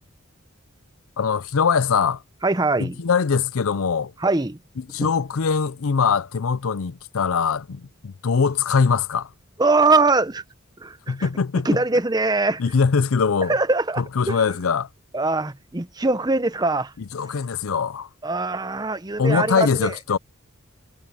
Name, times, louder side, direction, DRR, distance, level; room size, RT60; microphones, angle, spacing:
voice 1, 1.2-2.2 2.8-4.1 4.8-9.3 11.1-11.7 12.6-13.6 14.0-14.9 17.1-18.1 19.2-20.2, left 5 dB, 80° left, 0.6 m, -22 dB
voice 2, 2.4-3.0 4.2-4.6 5.0-5.1 9.6-10.4 10.8-11.3 11.6-12.6 13.5-14.4 15.1-16.9 18.2-19.9, right 3 dB, 20° right, 0.7 m, -22 dB
head